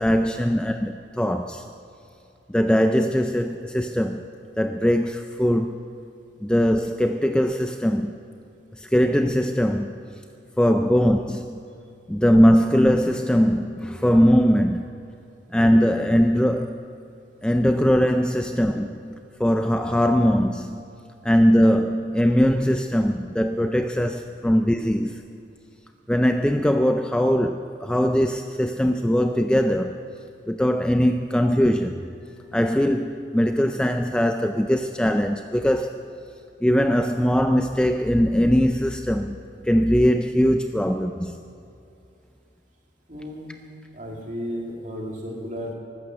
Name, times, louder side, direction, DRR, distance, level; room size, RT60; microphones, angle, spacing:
voice 1, 0.0-1.6 2.5-4.3 4.6-5.8 6.4-8.2 8.7-10.0 10.6-11.6 12.1-14.9 15.5-16.9 17.4-20.8 21.2-25.2 26.1-30.0 30.5-32.1 32.5-35.9 36.6-39.4 39.6-41.4, equal, 5° left, 0.3 m, -21 dB
voice 2, 43.1-43.6 43.9-45.7, equal, 40° right, 2.5 m, -33 dB
15.0 x 12.5 x 6.4 m
head